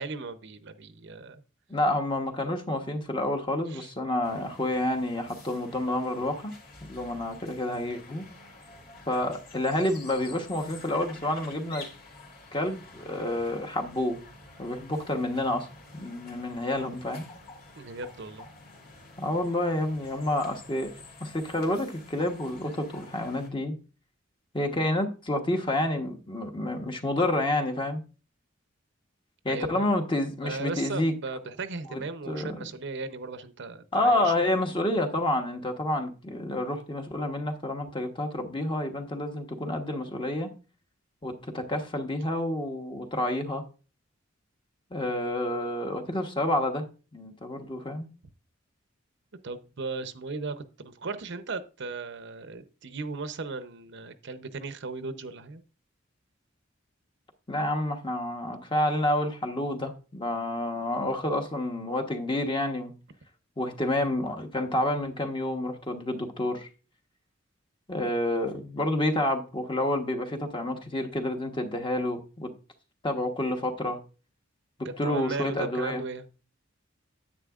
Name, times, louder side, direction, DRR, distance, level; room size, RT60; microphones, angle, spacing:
voice 1, 0.0-1.4 3.7-3.9 17.8-18.5 29.5-29.9 30.4-34.3 49.4-55.6 74.8-76.2, right 3 dB, 65° right, 0.7 m, -37 dB
voice 2, 1.7-6.5 6.8-8.3 9.1-11.9 12.5-14.2 14.6-15.7 15.9-17.3 19.2-20.9 21.2-23.8 24.5-28.0 29.4-31.1 31.9-32.0 32.3-32.6 33.9-40.5 41.2-43.6 44.9-46.9 47.1-48.1 57.5-62.9 63.6-66.7 67.9-72.5 73.0-74.0 74.8-76.0, left 1 dB, 25° left, 1.1 m, -29 dB
sound 1, 4.2-23.5, left 3 dB, 50° left, 2.8 m, -49 dB
9.9 x 8.8 x 2.4 m
head